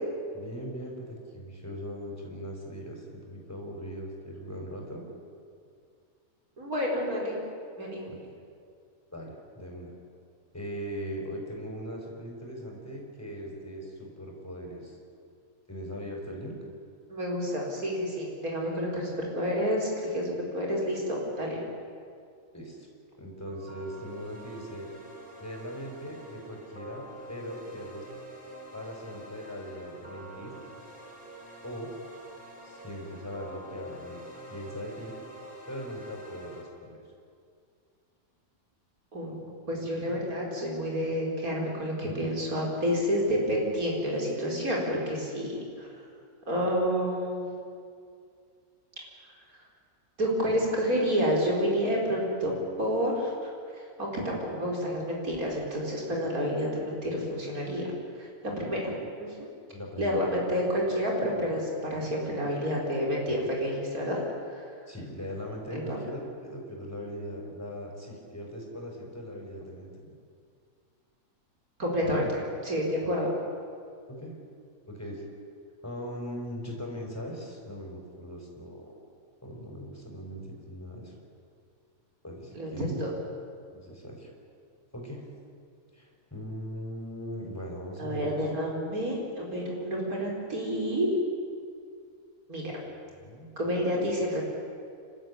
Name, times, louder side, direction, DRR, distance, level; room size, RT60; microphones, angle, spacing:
voice 1, 0.3-5.0 8.1-8.2 9.1-9.9 10.5-15.0 15.7-16.5 22.5-22.9 23.2-24.9 25.4-28.0 28.7-30.5 31.6-31.9 32.6-34.2 34.5-35.2 35.7-37.0 59.7-60.3 64.9-69.9 73.0-73.1 74.1-74.4 74.9-75.2 75.8-79.0 79.4-80.4 80.7-81.1 82.2-82.9 83.7-84.3 84.9-85.2 85.9-88.3 93.2-93.5, equal, 10° left, -1 dB, 5.3 m, -40 dB
voice 2, 6.6-7.4 7.8-8.1 17.1-21.6 39.1-39.4 39.7-45.9 46.5-47.5 50.2-57.9 58.2-58.9 59.2-59.5 60.0-64.7 65.7-66.0 71.8-73.3 82.5-83.1 88.0-91.1 92.5-92.7 93.6-94.4, equal, 75° right, -2 dB, 5.0 m, -29 dB
sound 1, 23.5-36.6, right 1 dB, 5° right, 5.4 m, -46 dB
29.0 x 13.0 x 9.8 m, 2.3 s
omnidirectional pair, 1.5 m